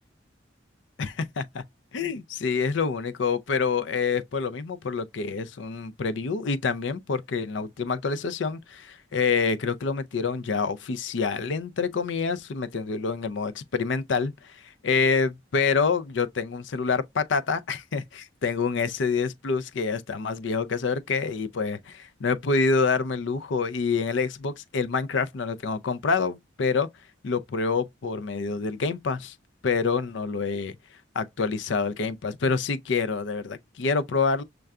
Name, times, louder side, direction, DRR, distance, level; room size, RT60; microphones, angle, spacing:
voice 1, 1.0-1.6 1.9-26.9 27.2-29.3 29.6-30.8 31.1-34.4, left 5 dB, 70° left, 0.5 m, -27 dB
6.4 x 2.3 x 2.3 m
head